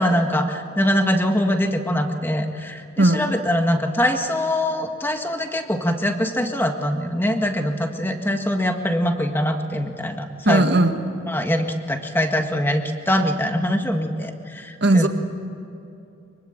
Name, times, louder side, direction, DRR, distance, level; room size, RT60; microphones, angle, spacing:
voice 1, 0.0-10.8 11.3-15.1, equal, 10° left, 5 dB, 1.7 m, -23 dB
voice 2, 10.5-10.9 14.8-15.1, right 2 dB, 55° right, 6 dB, 1.8 m, -16 dB
24.5 x 23.5 x 8.8 m, 2.7 s
head